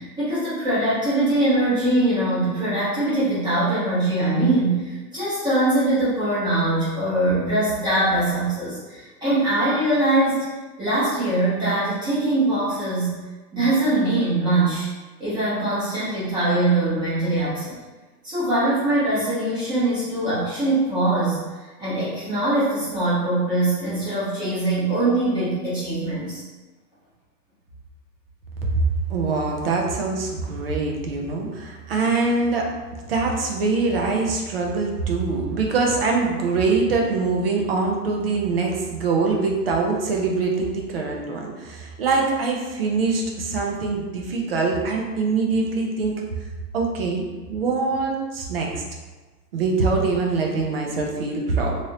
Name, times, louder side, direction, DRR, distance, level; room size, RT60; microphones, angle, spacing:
voice 1, 0.0-10.5 10.8-13.1 13.5-14.9 15.2-17.7 18.2-26.4, right 2 dB, 10° right, -11 dB, 0.9 m, -22 dB
voice 2, 29.1-46.2 46.7-47.2 47.5-48.8 49.5-51.8, right 3 dB, 40° right, 0 dB, 0.4 m, -23 dB
3.2 x 2.6 x 2.7 m, 1.2 s
hypercardioid pair, 155°, 49 cm